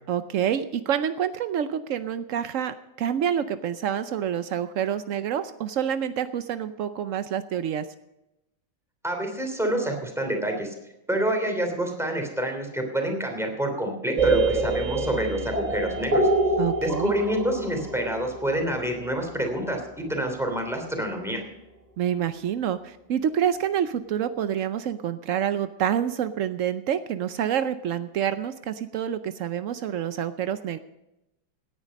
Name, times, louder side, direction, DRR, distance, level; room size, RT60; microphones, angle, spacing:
voice 1, 0.1-7.9 16.6-17.1 22.0-30.8, right 9 dB, 90° right, 11 dB, 0.6 m, -27 dB
voice 2, 9.0-10.7 11.1-16.3 16.8-21.4, right 1 dB, ahead, 2 dB, 2.9 m, -27 dB
sound 1, 14.2-19.9, right 2 dB, 20° right, 1.3 m, -26 dB
17.0 x 10.0 x 5.2 m, 0.90 s
omnidirectional pair, 2.1 m